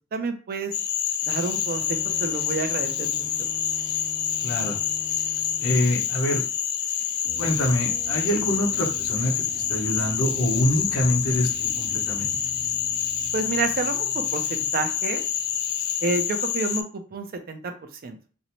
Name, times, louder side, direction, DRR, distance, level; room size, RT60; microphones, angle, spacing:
voice 1, 0.1-0.7 1.2-3.5 13.3-15.2 16.0-18.2, right 3 dB, 45° right, 6 dB, 0.4 m, -29 dB
Cricket / Frog, 0.7-16.8, left 9 dB, 50° left, 0.4 m, -27 dB
Bowed string instrument, 1.5-6.2, left 2 dB, 25° right, 1.0 m, -44 dB
voice 2, 4.4-4.8 5.6-6.4 7.4-12.3, equal, 70° left, 0 dB, 0.8 m, -25 dB
sound 1, 7.2-15.9, left 1 dB, 30° left, 0.9 m, -44 dB
2.6 x 2.0 x 2.9 m, 0.39 s
head